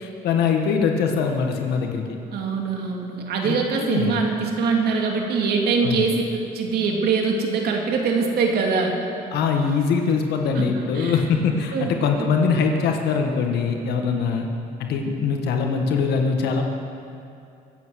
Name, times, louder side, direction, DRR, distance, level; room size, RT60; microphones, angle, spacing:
voice 1, 0.0-2.2 3.4-4.2 5.8-6.0 9.3-14.5 14.8-16.6, left 5 dB, 75° left, 3 dB, 1.6 m, -22 dB
voice 2, 2.3-8.9 10.5-10.7 10.9-11.2 11.7-11.9 12.2-12.3, right 4 dB, 70° right, 1 dB, 2.7 m, -23 dB
24.0 x 8.3 x 6.4 m, 2.5 s
cardioid pair, 110°, 17 cm